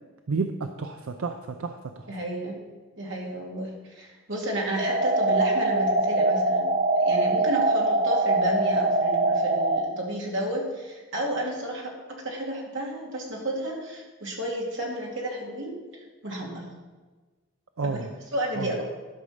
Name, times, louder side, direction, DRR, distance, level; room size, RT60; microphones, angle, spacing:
voice 1, 0.3-2.0 17.8-18.1 18.6-18.7, right 4 dB, 80° right, 7 dB, 0.6 m, -31 dB
voice 2, 2.1-2.6 3.0-15.7 16.2-16.7 17.9-18.8, right 1 dB, 60° right, -2 dB, 2.5 m, -32 dB
sound 1, 4.8-9.8, right 2 dB, 40° right, 1.0 m, -23 dB
12.0 x 5.3 x 6.5 m, 1.3 s
head